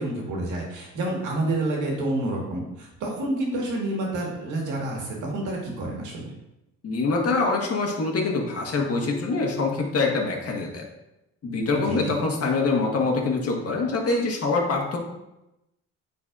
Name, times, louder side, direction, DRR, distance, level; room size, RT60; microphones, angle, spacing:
voice 1, 0.0-6.3 11.8-12.1, right 1 dB, 85° right, -1 dB, 1.8 m, -28 dB
voice 2, 6.8-10.9 11.4-15.0, left 3 dB, 50° left, -1 dB, 1.5 m, -24 dB
9.1 x 4.1 x 2.5 m, 0.92 s
cardioid pair, 90°, 30 cm